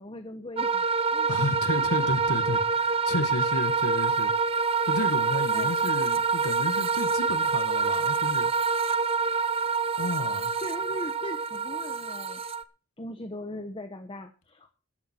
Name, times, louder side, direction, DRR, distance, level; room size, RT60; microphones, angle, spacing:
voice 1, 0.0-1.3 5.5-5.9 10.6-12.4 13.0-14.7, left 1 dB, 25° left, 1.2 m, -39 dB
sound 1, 0.6-12.6, right 5 dB, 25° right, 0.7 m, -26 dB
voice 2, 1.3-4.3 4.8-8.5 10.0-10.5, left 2 dB, 80° left, 1.7 m, -32 dB
14.0 x 11.0 x 4.5 m
head